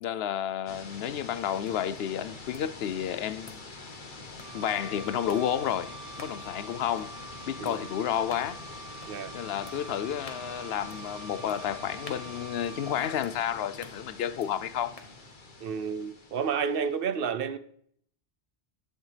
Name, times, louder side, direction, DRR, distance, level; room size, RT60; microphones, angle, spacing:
voice 1, 0.0-3.6 4.5-7.1 7.5-8.6 9.3-15.0, left 9 dB, 75° left, 0.8 m, -31 dB
sound 1, 0.7-17.0, left 3 dB, 55° left, 1.4 m, -45 dB
sound 2, 1.6-15.4, left 3 dB, 35° left, 1.2 m, -54 dB
Wind instrument woodwind instrument, 4.4-13.2, right 4 dB, 20° right, 0.8 m, -46 dB
voice 2, 15.6-17.6, right 6 dB, 65° right, 0.8 m, -30 dB
19.5 x 6.5 x 3.3 m
omnidirectional pair, 1.0 m